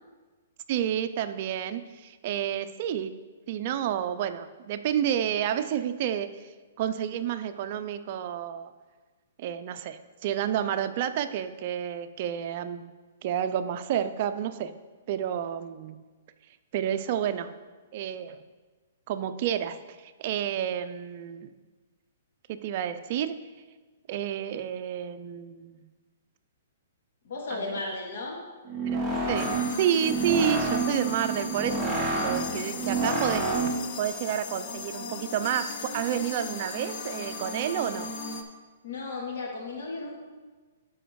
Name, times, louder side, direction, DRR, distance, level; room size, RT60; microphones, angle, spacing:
voice 1, 0.7-3.1 3.5-6.3 6.8-8.7 9.4-12.9 13.2-14.7 15.1-16.0 16.7-17.5 17.9-18.4 19.1-21.5 22.5-23.4 24.1-25.8 27.5-27.7 28.9-38.1, right 10 dB, 45° right, 10 dB, 0.5 m, -30 dB
voice 2, 27.2-28.4 38.8-40.2, left 3 dB, 65° left, -2 dB, 2.5 m, -35 dB
sound 1, 28.6-33.9, right 3 dB, ahead, 1.3 m, -29 dB
sound 2, 29.3-38.4, left 4 dB, 40° left, 0.8 m, -37 dB
13.5 x 5.0 x 3.1 m, 1.3 s
hypercardioid pair, 150°, 0 cm